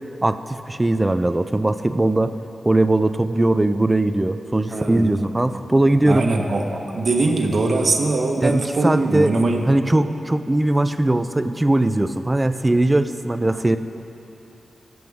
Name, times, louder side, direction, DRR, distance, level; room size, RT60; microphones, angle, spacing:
voice 1, 0.2-2.3 2.6-6.3 8.4-9.4 9.7-13.8, right 1 dB, 15° right, 10 dB, 0.5 m, -20 dB
voice 2, 4.7-5.1 6.1-9.6, right 2 dB, 55° right, 2 dB, 1.2 m, -21 dB
22.5 x 7.8 x 3.6 m, 3.0 s
wide cardioid pair, 115°, 0 cm